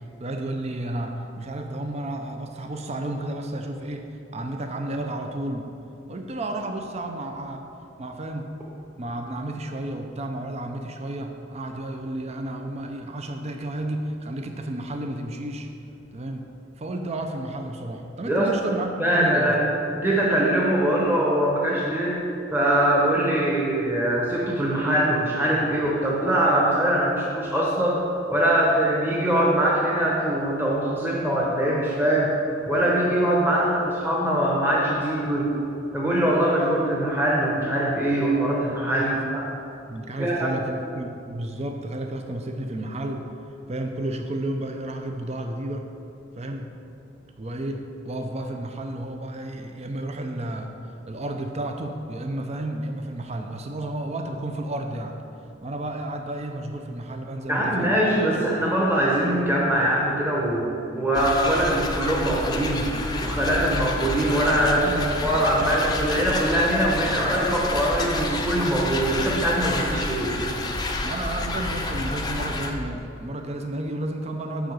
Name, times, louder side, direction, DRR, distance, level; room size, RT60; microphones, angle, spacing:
voice 1, 0.2-4.1 4.3-5.7 6.1-7.6 8.0-8.5 9.0-15.7 16.1-16.5 16.8-19.6 39.0-39.2 39.9-43.3 43.7-45.9 46.4-46.7 47.4-50.7 51.1-55.2 55.6-58.1 58.6-58.7 64.8-65.2 65.5-65.6 71.0-74.7, right 1 dB, 35° right, 4 dB, 0.5 m, -32 dB
voice 2, 19.0-19.7 20.0-22.2 22.5-28.0 28.3-32.3 32.7-35.5 35.9-39.4 40.2-40.6 57.5-60.6 60.9-62.9 63.2-64.9 65.2-70.3, right 1 dB, 10° right, -5 dB, 1.0 m, -22 dB
sound 1, 61.1-72.7, left 2 dB, 20° left, 0.6 m, -29 dB
9.9 x 3.9 x 6.5 m, 2.7 s
head